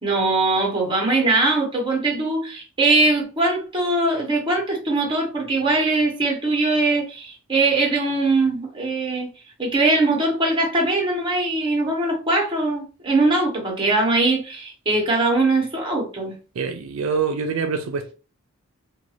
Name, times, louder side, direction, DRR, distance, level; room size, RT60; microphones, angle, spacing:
voice 1, 0.0-9.3 9.6-16.3, right 2 dB, 25° right, 1.0 m, -21 dB
voice 2, 16.6-18.1, right 5 dB, 80° right, 0.4 m, -25 dB
2.5 x 2.3 x 3.1 m
head